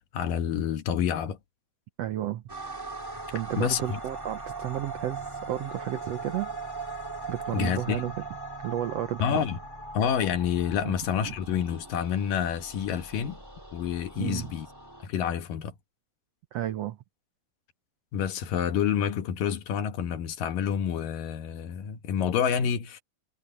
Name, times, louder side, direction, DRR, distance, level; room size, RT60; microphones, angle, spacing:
voice 1, 0.1-1.4 3.6-4.0 7.5-8.0 9.2-9.6 9.9-13.4 13.7-14.7 15.0-15.7 18.1-23.0, left 8 dB, 75° left, 3.0 m, -28 dB
voice 2, 2.0-2.4 3.3-6.5 7.3-8.1 8.6-9.2 10.8-10.9 11.3-11.4 14.2-14.5 16.5-17.0, right 12 dB, 80° right, 1.4 m, -32 dB
sound 1, 2.5-15.1, right 3 dB, 10° right, 1.6 m, -40 dB
omnidirectional pair, 4.0 m